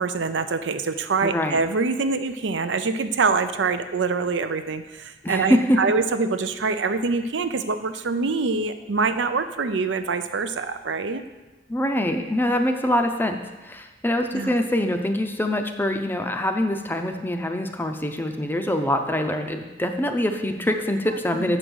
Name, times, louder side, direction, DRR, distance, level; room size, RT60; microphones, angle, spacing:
voice 1, 0.0-11.2 14.3-14.5 21.4-21.6, right 4 dB, 85° right, 10 dB, 0.6 m, -25 dB
voice 2, 1.2-1.6 5.2-5.8 11.7-21.6, left 1 dB, 10° left, 5 dB, 0.5 m, -24 dB
7.4 x 5.3 x 6.2 m, 1.1 s
head